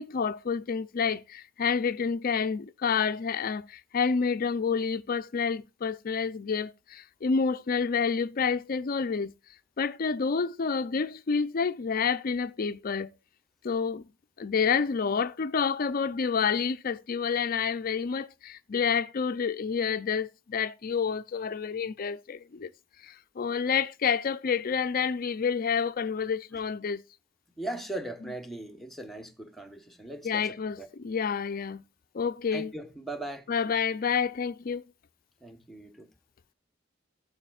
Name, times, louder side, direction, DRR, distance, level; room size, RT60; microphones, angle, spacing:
voice 1, 0.0-9.3 9.8-13.2 13.6-14.1 14.4-22.7 23.0-27.0 30.2-31.8 32.1-32.7 33.5-34.8, left 6 dB, 50° left, 0.5 m, -29 dB
voice 2, 27.6-30.9 32.5-33.5 35.4-36.1, right 2 dB, ahead, 1.1 m, -39 dB
13.5 x 7.8 x 2.4 m
head